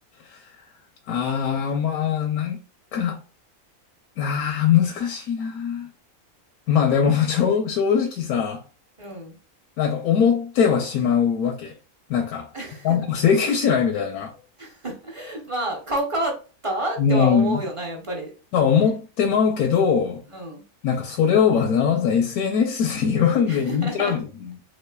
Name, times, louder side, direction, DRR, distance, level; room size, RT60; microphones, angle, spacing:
voice 1, 0.2-0.5 1.1-2.6 2.9-3.2 4.2-5.9 6.7-8.6 9.8-11.7 12.1-12.5 12.8-14.3 17.0-17.6 18.5-20.2 20.8-24.5, left 7 dB, 80° left, 1.1 m, -21 dB
voice 2, 9.0-9.4 12.5-13.0 14.6-18.3 20.3-20.6 23.4-24.2, right 1 dB, 35° right, 0.5 m, -29 dB
3.5 x 3.1 x 2.2 m
omnidirectional pair, 1.5 m